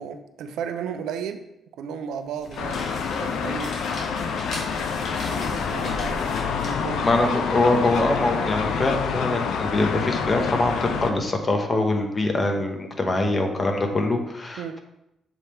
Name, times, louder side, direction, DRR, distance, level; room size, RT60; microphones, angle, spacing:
voice 1, 0.0-1.4 1.8-3.8 5.3-7.1 7.8-8.4 14.6-14.8, right 7 dB, 85° right, 8 dB, 0.4 m, -34 dB
sound 1, 2.2-7.9, left 1 dB, 50° left, 2.0 m, -38 dB
sound 2, 2.6-11.1, left 6 dB, 75° left, 0.6 m, -27 dB
voice 2, 7.0-14.8, left 2 dB, 30° left, 3 dB, 1.0 m, -23 dB
7.1 x 3.4 x 4.4 m, 0.87 s
cardioid pair, 90°, 0 cm